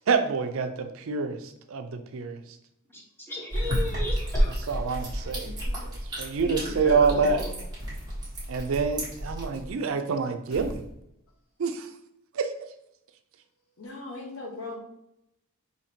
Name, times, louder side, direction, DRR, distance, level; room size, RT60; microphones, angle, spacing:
voice 1, 0.1-2.4 4.7-5.5 5.8-7.4 8.5-10.8 11.6-11.9 12.3-12.5, right 5 dB, 65° right, 7 dB, 0.4 m, -27 dB
voice 2, 2.9-4.7 6.4-7.5, equal, 10° left, -2 dB, 0.7 m, -36 dB
sound 1, 3.5-9.7, equal, 20° right, 1.2 m, -31 dB
sound 2, 4.9-5.3 7.8-8.1 10.5-11.3, equal, 40° left, 1.0 m, -41 dB
voice 3, 13.8-14.8, left 3 dB, 70° left, 2 dB, 0.9 m, -39 dB
5.2 x 2.8 x 2.8 m, 0.80 s
head